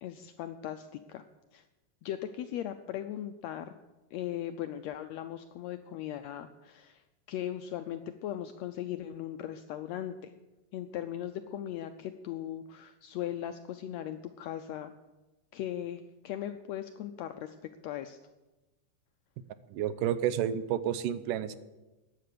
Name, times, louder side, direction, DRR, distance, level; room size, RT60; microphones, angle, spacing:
voice 1, 0.0-1.2 1.5-1.6 2.0-3.8 4.1-7.0 7.3-10.3 10.7-14.9 15.5-17.5 17.8-18.2, left 11 dB, 85° left, 9 dB, 1.5 m, -38 dB
voice 2, 19.7-21.6, right 10 dB, 90° right, 14 dB, 2.3 m, -30 dB
14.5 x 9.8 x 6.8 m, 1.1 s
omnidirectional pair, 3.6 m